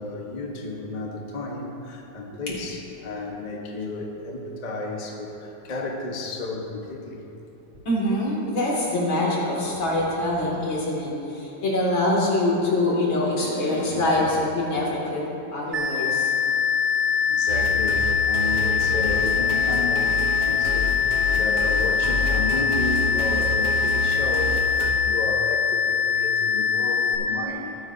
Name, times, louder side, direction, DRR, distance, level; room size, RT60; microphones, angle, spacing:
voice 1, 0.0-7.2 17.0-24.6 25.0-27.8, left 2 dB, 30° left, -1 dB, 0.9 m, -32 dB
voice 2, 7.8-16.3, left 1 dB, 75° left, -5 dB, 3.2 m, -24 dB
sound 1, 15.7-27.1, left 7 dB, 10° right, 1.7 m, -23 dB
sound 2, 17.5-24.9, right 1 dB, 55° right, 1.4 m, -30 dB
18.5 x 9.9 x 2.7 m, 2.9 s
omnidirectional pair, 2.2 m